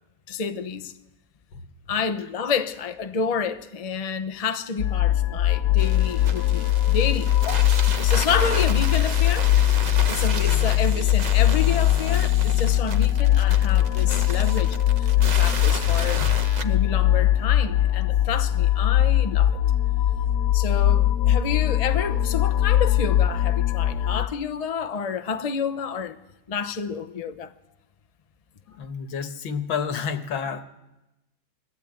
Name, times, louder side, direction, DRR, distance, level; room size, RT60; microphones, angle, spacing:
voice 1, 0.3-0.9 1.9-7.3 8.0-16.4 16.6-19.6 20.5-26.2 26.5-27.5, left 6 dB, 45° left, 0.5 m, -29 dB
sound 1, 4.8-24.3, left 12 dB, 65° left, 1.3 m, -21 dB
sound 2, 5.8-16.6, right 4 dB, 35° right, 0.7 m, -34 dB
voice 2, 28.8-30.6, left 6 dB, 85° left, 2.0 m, -30 dB
21.5 x 14.0 x 9.0 m
omnidirectional pair, 2.1 m